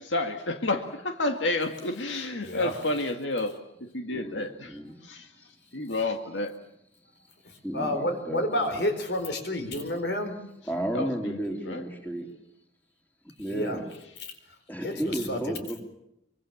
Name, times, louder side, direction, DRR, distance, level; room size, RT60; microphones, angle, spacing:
voice 1, 0.0-3.5 3.8-5.3 5.7-6.6 10.9-11.8, left 2 dB, 80° left, 5 dB, 2.0 m, -30 dB
voice 2, 4.1-5.0 7.6-8.9 10.6-12.3 13.4-13.9 14.7-15.8, right 1 dB, 10° left, 2 dB, 3.7 m, -33 dB
voice 3, 7.7-10.4 13.5-13.8 14.8-15.6, left 1 dB, 60° left, 7 dB, 4.6 m, -29 dB
25.0 x 24.0 x 7.2 m, 0.81 s
head